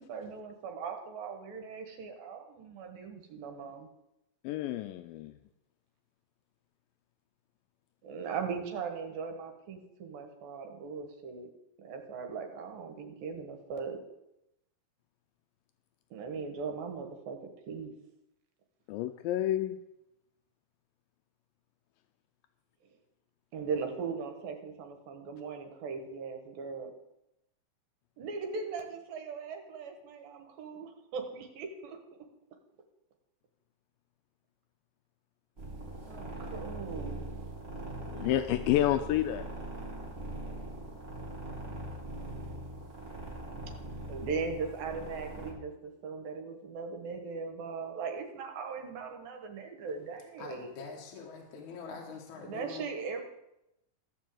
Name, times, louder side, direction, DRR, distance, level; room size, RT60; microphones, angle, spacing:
voice 1, 0.0-3.9 8.0-11.5 11.8-14.0 16.1-17.4 17.7-17.9 23.5-26.9 28.2-32.0 36.0-37.3 44.1-50.7 52.4-53.2, right 5 dB, 80° right, 4 dB, 3.1 m, -39 dB
voice 2, 4.4-5.3 18.9-19.8 38.1-39.5, left 13 dB, 85° left, 8 dB, 2.3 m, -29 dB
sound 1, 35.6-45.5, right 1 dB, 20° right, 2.5 m, -41 dB
voice 3, 50.4-52.8, left 5 dB, 60° left, 0 dB, 2.7 m, -44 dB
14.5 x 5.4 x 7.7 m, 0.86 s
omnidirectional pair, 4.1 m